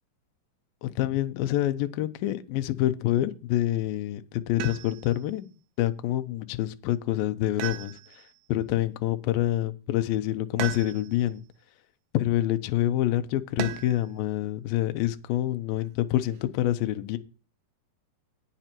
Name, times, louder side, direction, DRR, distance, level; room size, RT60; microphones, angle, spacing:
voice 1, 0.8-5.5 5.8-8.2 8.5-11.4 12.1-17.2, left 14 dB, 75° left, 2.3 m, -27 dB
sound 1, 4.6-5.2 7.6-8.4 10.6-11.3 13.6-14.1 15.8-16.4, right 10 dB, 85° right, 3.1 m, -36 dB
19.0 x 6.7 x 3.0 m
omnidirectional pair, 4.7 m